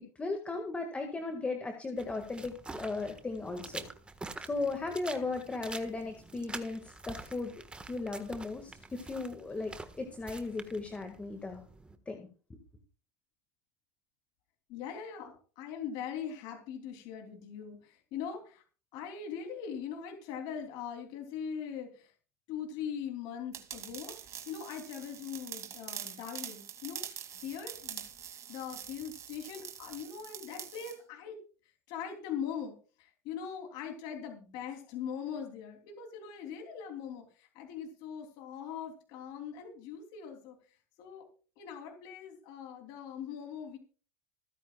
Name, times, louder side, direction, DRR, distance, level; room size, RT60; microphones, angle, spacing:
voice 1, 0.2-3.9 4.4-7.6 7.9-11.6 12.1-12.3, left 3 dB, 15° left, 5 dB, 1.9 m, -36 dB
sound 1, 2.0-12.0, right 3 dB, 10° right, 1.5 m, -47 dB
voice 2, 14.7-18.6 18.9-22.1 22.5-24.1 24.5-27.0 27.4-28.0 28.5-31.4 31.9-40.6 41.0-41.2 41.6-43.8, left 7 dB, 60° left, 3 dB, 3.1 m, -41 dB
sound 2, 23.5-31.0, right 9 dB, 40° right, 2.5 m, -45 dB
26.5 x 9.4 x 2.4 m, 0.37 s
supercardioid pair, 115°, 8 cm